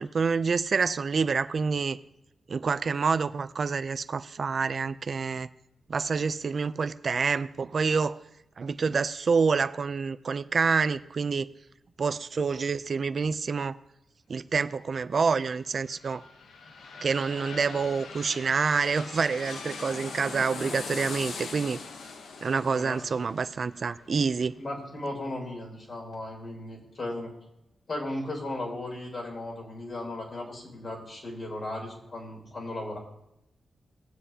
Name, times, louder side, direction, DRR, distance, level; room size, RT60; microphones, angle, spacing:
voice 1, 0.0-2.0 2.5-5.5 5.9-8.2 8.6-11.5 12.0-13.8 14.3-16.2 17.0-21.8 22.4-24.6, right 5 dB, 55° right, 13 dB, 0.4 m, -27 dB
sound 1, 15.6-25.2 25.7-25.8, left 4 dB, 85° left, 0.9 m, -41 dB
voice 2, 22.6-23.0 24.6-27.3 27.9-33.0, left 1 dB, 50° left, -1 dB, 3.5 m, -36 dB
22.0 x 7.9 x 2.8 m, 0.83 s
cardioid pair, 95°, 0 cm